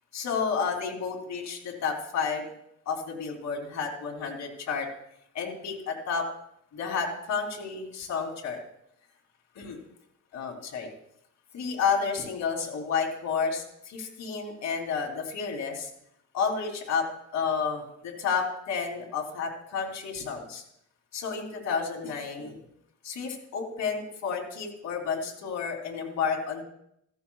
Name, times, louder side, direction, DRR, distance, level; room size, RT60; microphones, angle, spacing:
voice 1, 0.1-2.5 2.8-4.9 5.3-6.3 6.7-8.6 9.5-9.8 10.3-10.9 11.5-15.9 16.3-17.1 17.3-20.6 21.1-22.6 23.0-26.6, left 5 dB, 70° left, 1 dB, 3.3 m, -31 dB
15.5 x 14.0 x 2.4 m, 0.76 s
cardioid pair, 105°, 30 cm